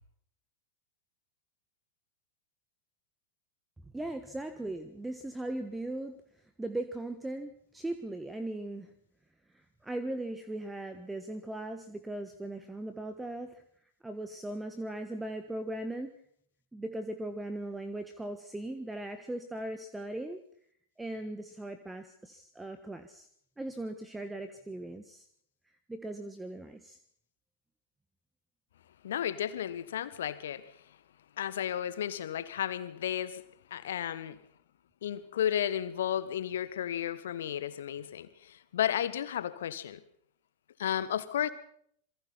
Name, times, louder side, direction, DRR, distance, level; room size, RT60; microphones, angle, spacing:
voice 1, 3.9-6.2 6.6-8.9 9.5-13.6 14.0-16.2 16.7-20.4 21.0-23.3 23.6-25.3 25.9-27.0, right 1 dB, 10° right, 1.4 m, -38 dB
voice 2, 29.0-30.7 31.4-33.4 33.7-34.4 35.0-40.0 40.8-41.5, left 10 dB, 60° left, 1.4 m, -33 dB
27.5 x 23.5 x 4.3 m
figure-of-eight pair, 90°, 0 cm